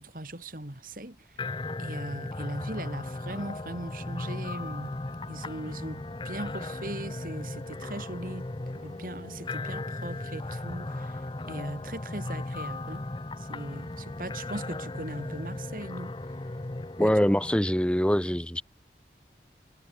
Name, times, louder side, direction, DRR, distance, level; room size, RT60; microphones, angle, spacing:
voice 1, 0.0-1.4 1.8-5.0 5.3-8.5 8.7-13.0 13.4-16.2 17.0-17.1, right 1 dB, 50° right, 3.1 m, -39 dB
sound 1, 1.4-17.6, left 2 dB, 25° left, 0.6 m, -37 dB
voice 2, 17.0-18.6, equal, 5° left, 1.1 m, -24 dB
head